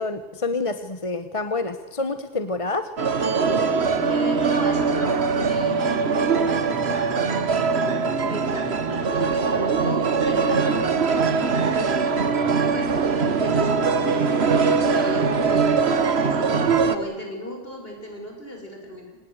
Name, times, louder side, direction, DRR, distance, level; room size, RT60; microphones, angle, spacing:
voice 1, 0.0-2.9, left 3 dB, 30° left, 10 dB, 1.1 m, -27 dB
sound 1, 3.0-17.0, right 5 dB, 55° right, 1.6 m, -22 dB
sound 2, 3.2-17.0, right 3 dB, 25° right, 3.1 m, -36 dB
voice 2, 3.8-19.2, left 1 dB, 50° left, 2 dB, 6.2 m, -36 dB
26.0 x 19.5 x 8.1 m, 1.3 s
omnidirectional pair, 1.3 m